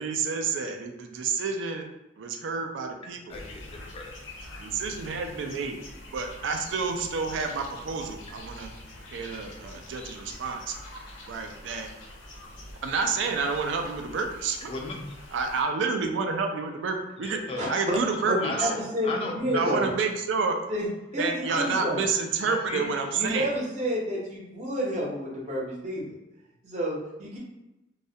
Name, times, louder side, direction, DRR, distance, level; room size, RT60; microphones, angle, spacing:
voice 1, 0.0-1.9 2.2-3.3 4.6-5.8 6.1-8.7 9.1-10.7 11.3-11.9 12.8-14.7 15.3-17.4 17.7-18.7 19.5-20.6 21.2-23.5, right 4 dB, 75° right, 5 dB, 0.3 m, -29 dB
sound 1, 3.3-15.6, left 1 dB, 85° left, 0.6 m, -45 dB
voice 2, 3.3-4.2 14.7-15.1 17.2-17.8 18.1-19.8 21.5-21.7 22.5-22.9, left 3 dB, 30° left, 2 dB, 0.3 m, -36 dB
voice 3, 17.6-18.0 18.3-19.9 20.7-22.0 22.4-22.8 23.1-26.2 26.6-27.4, equal, 40° right, -4 dB, 0.6 m, -30 dB
2.3 x 2.1 x 2.7 m, 0.97 s
head